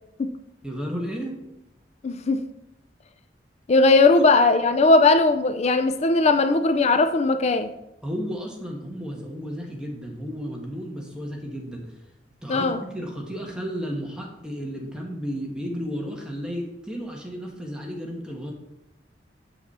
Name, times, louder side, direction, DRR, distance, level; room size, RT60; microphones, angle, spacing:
voice 1, 0.6-1.4 8.0-11.8 12.4-18.5, equal, 5° right, 0 dB, 1.3 m, -33 dB
voice 2, 2.0-2.4 3.7-7.7 12.5-12.8, left 3 dB, 35° left, 8 dB, 0.4 m, -18 dB
8.9 x 5.9 x 4.2 m, 0.88 s
head